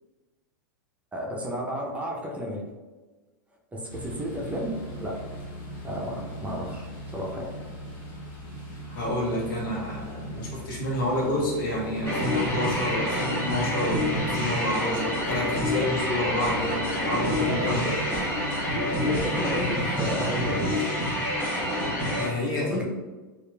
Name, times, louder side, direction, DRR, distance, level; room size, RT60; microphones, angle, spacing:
voice 1, 1.1-2.6 3.7-4.7 5.0-5.2 5.8-6.9 7.1-7.5 17.4-17.7 18.4-20.9 22.6-22.9, equal, 10° right, -2 dB, 0.5 m, -32 dB
sound 1, 3.9-20.6, right 2 dB, 50° left, 1.0 m, -39 dB
voice 2, 8.9-18.0 22.2-22.9, left 1 dB, 75° left, -4 dB, 1.0 m, -29 dB
sound 2, 12.0-22.3, left 1 dB, 20° left, 1.2 m, -27 dB
2.9 x 2.4 x 2.2 m, 1.2 s
hypercardioid pair, 115°, 11 cm